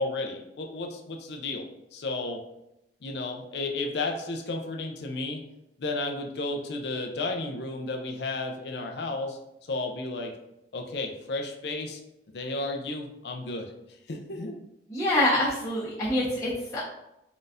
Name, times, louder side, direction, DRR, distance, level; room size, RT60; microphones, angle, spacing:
voice 1, 0.0-1.7 1.9-2.4 3.0-5.4 5.8-9.4 9.7-10.3 10.7-12.0 12.3-13.7 14.1-14.6, left 2 dB, 65° left, 3 dB, 0.5 m, -33 dB
voice 2, 14.9-16.8, left 1 dB, 20° left, -11 dB, 1.0 m, -26 dB
3.9 x 3.9 x 2.5 m, 0.85 s
head